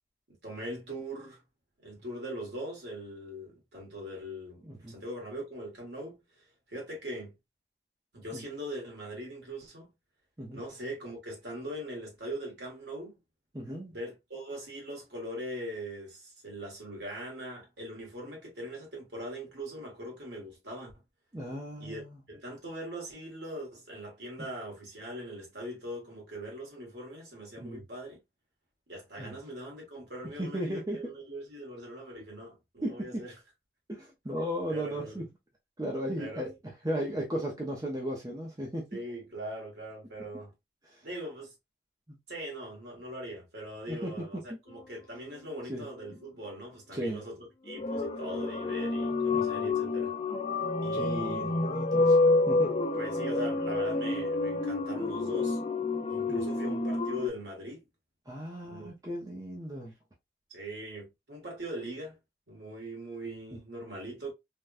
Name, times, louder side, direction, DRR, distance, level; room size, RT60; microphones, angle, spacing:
voice 1, 0.4-1.4 1.8-7.3 8.1-9.9 10.5-13.2 13.9-20.9 21.8-22.0 22.3-28.2 28.9-33.3 34.7-35.2 36.2-36.5 38.9-40.5 41.0-41.5 42.3-50.1 50.8-51.6 52.9-55.6 56.1-57.8 58.6-58.9 60.5-62.2 62.5-64.3, equal, 70° right, 1.6 m, -41 dB
voice 2, 4.6-5.0 8.3-8.4 10.4-10.6 13.5-13.9 21.3-22.2 27.6-27.8 29.2-29.3 30.4-31.0 32.8-33.2 33.9-35.3 35.8-36.5 36.8-39.0 40.9-41.0 43.9-44.1 45.7-45.9 46.9-47.2 49.3-49.7 50.9-52.2 52.5-52.7 56.3-56.4 58.3-59.9, equal, 20° right, 0.5 m, -35 dB
sound 1, 47.7-57.3, left 3 dB, 35° left, 0.4 m, -28 dB
3.4 x 2.2 x 2.4 m
head